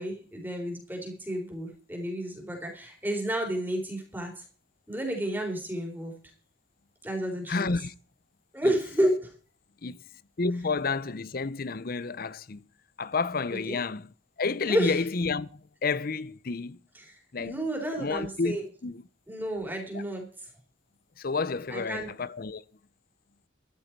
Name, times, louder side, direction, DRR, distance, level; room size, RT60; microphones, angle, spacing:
voice 1, 0.0-4.4 4.9-6.1 7.0-7.7 8.5-9.3 13.5-13.8 14.6-15.0 16.9-18.6 19.3-20.5 21.7-22.1, right 1 dB, 10° right, 3.9 m, -31 dB
voice 2, 7.5-7.9 8.6-8.7 9.8-10.0 10.4-12.6 13.0-14.1 14.4-16.8 17.3-17.5 18.0-18.6 18.8-19.0 19.9-20.0 21.2-22.6, left 4 dB, 50° left, 0.6 m, -30 dB
13.5 x 12.5 x 4.6 m
head